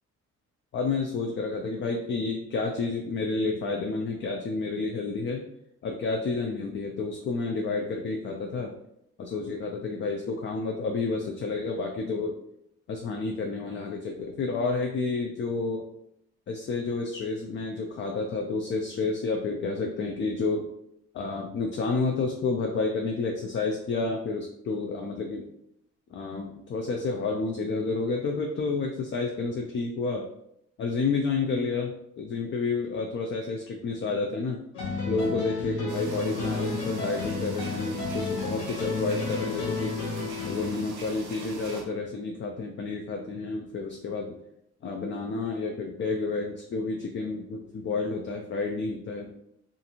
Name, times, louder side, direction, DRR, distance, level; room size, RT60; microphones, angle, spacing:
voice 1, 0.7-5.5 5.8-8.7 9.2-12.3 12.9-15.8 16.5-20.6 21.1-25.4 26.1-30.3 30.8-34.6 35.1-39.9 40.5-44.4 44.8-49.3, left 3 dB, 40° left, 2 dB, 0.4 m, -30 dB
Country Road, 34.7-40.8, left 3 dB, 80° left, 0.8 m, -32 dB
sound 1, 35.9-41.8, right 4 dB, 80° right, 0.7 m, -43 dB
2.5 x 2.5 x 2.8 m, 0.76 s
cardioid pair, 90°, 30 cm